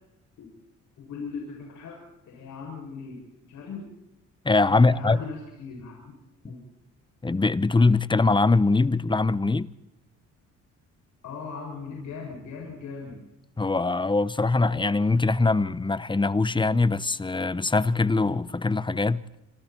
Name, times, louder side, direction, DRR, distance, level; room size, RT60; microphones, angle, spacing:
voice 1, 1.0-2.0 2.3-3.2 3.5-3.9 4.7-6.1 6.4-6.6 11.2-13.2, left 5 dB, 75° left, 7.4 m, -38 dB
voice 2, 4.4-5.2 7.2-9.7 13.6-19.2, left 3 dB, 15° left, 0.9 m, -22 dB
27.5 x 26.5 x 4.5 m
cardioid pair, 90°, 30 cm